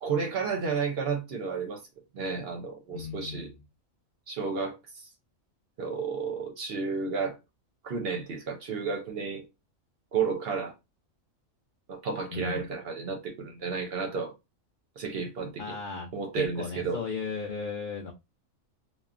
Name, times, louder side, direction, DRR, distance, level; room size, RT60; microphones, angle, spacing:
voice 1, 0.0-1.8 2.1-3.5 4.3-5.1 5.8-7.4 7.8-9.4 10.1-10.7 11.9-14.3 15.0-15.8 16.1-17.0, right 5 dB, 60° right, 0.7 m, -32 dB
voice 2, 2.9-3.5 12.3-12.7 15.6-16.1 16.3-18.1, left 5 dB, 90° left, 0.4 m, -35 dB
3.0 x 2.2 x 2.4 m
omnidirectional pair, 1.4 m